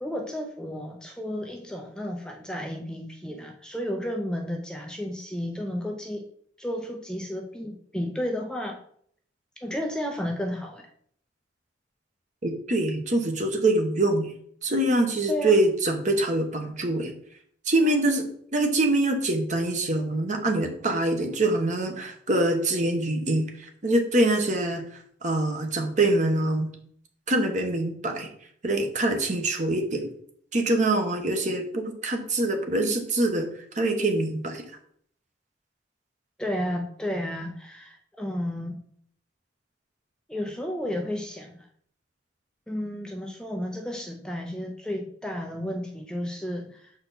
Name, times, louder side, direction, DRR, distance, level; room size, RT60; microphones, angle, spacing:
voice 1, 0.0-6.3 6.6-8.8 9.6-10.9 15.3-15.6 17.8-18.0 36.4-38.9 40.3-41.7 42.7-46.9, equal, 5° left, 1 dB, 0.5 m, -32 dB
voice 2, 12.4-14.3 14.6-17.1 17.6-26.7 27.3-28.3 28.6-30.1 30.5-33.5 33.7-34.7, right 2 dB, 40° right, 4 dB, 1.0 m, -24 dB
6.7 x 4.3 x 4.0 m, 0.63 s
head